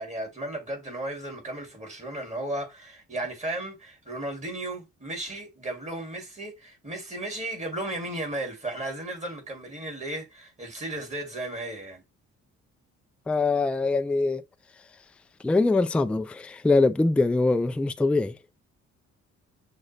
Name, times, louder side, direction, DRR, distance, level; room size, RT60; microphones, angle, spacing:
voice 1, 0.0-12.0, right 1 dB, 25° right, 2.3 m, -35 dB
voice 2, 13.3-14.4 15.4-18.4, left 3 dB, 5° left, 0.3 m, -23 dB
6.3 x 2.2 x 3.3 m
cardioid pair, 90°, 30 cm